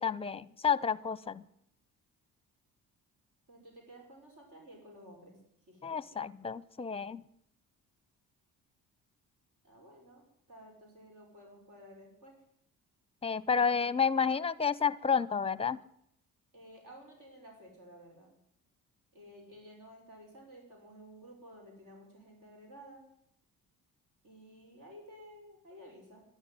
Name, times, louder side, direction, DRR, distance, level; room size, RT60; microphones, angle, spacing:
voice 1, 0.0-1.4 5.8-7.2 13.2-15.8, left 6 dB, 15° left, 19 dB, 0.7 m, -30 dB
voice 2, 3.5-5.4 5.7-6.2 9.6-12.4 16.5-18.3 19.1-23.0 24.2-26.2, equal, 65° right, 0 dB, 5.7 m, -53 dB
12.0 x 11.0 x 9.3 m, 0.74 s
cardioid pair, 80°, 34 cm